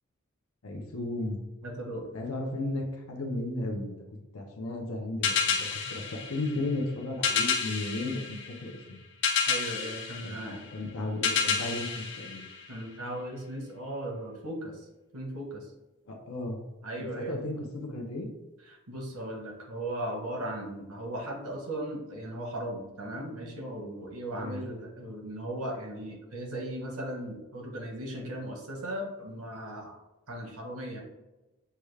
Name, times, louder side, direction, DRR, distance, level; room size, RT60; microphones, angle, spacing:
voice 1, 0.6-1.4 2.1-4.0 4.3-5.6 5.9-9.0 10.2-12.5 16.1-16.6 17.1-18.3 24.4-24.6, left 2 dB, 85° left, 0 dB, 0.8 m, -34 dB
voice 2, 1.6-2.1 9.5-10.6 12.7-14.8 15.1-15.7 16.8-17.4 18.6-29.9 30.3-31.0, right 1 dB, 85° right, 0 dB, 1.2 m, -37 dB
sound 1, 5.2-13.1, left 6 dB, 55° left, 0.7 m, -31 dB
6.8 x 2.4 x 3.2 m, 1.0 s
head